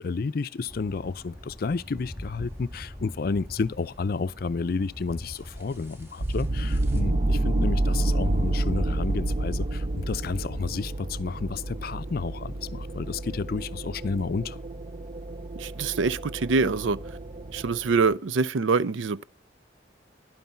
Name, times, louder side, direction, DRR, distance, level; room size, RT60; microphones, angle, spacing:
voice 1, 0.0-14.6, left 4 dB, 55° left, 0.4 m, -31 dB
sound 1, 0.7-7.0, left 1 dB, 15° right, 1.8 m, -43 dB
sound 2, 6.2-18.1, right 1 dB, 35° right, 0.4 m, -29 dB
voice 2, 15.6-17.0 17.5-19.3, right 4 dB, 90° right, 0.5 m, -25 dB
11.0 x 9.4 x 4.4 m
head